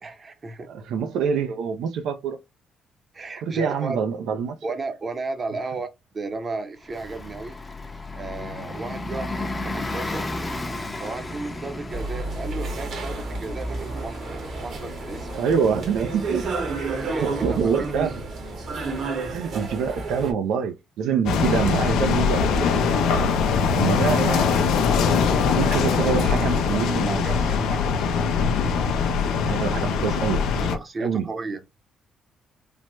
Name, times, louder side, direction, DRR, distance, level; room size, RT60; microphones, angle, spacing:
voice 1, 0.0-0.7 3.1-4.0 4.6-5.9 6.1-7.6 8.1-10.3 11.0-14.2 14.6-15.3 17.0-17.7 25.8-28.2 30.6-31.6, right 3 dB, 35° right, 0.7 m, -34 dB
voice 2, 0.7-2.4 3.4-4.6 15.4-16.4 17.2-18.1 19.3-23.2 23.7-24.6 25.5-27.3 29.5-30.5 31.0-31.3, right 6 dB, 85° right, 0.4 m, -26 dB
Bus, 6.8-19.1, left 2 dB, 20° left, 0.6 m, -35 dB
sound 1, 11.9-20.3, right 3 dB, 65° right, 1.0 m, -31 dB
sound 2, 21.3-30.8, left 5 dB, 90° left, 0.5 m, -22 dB
3.3 x 2.1 x 2.9 m
cardioid pair, 95°, 0 cm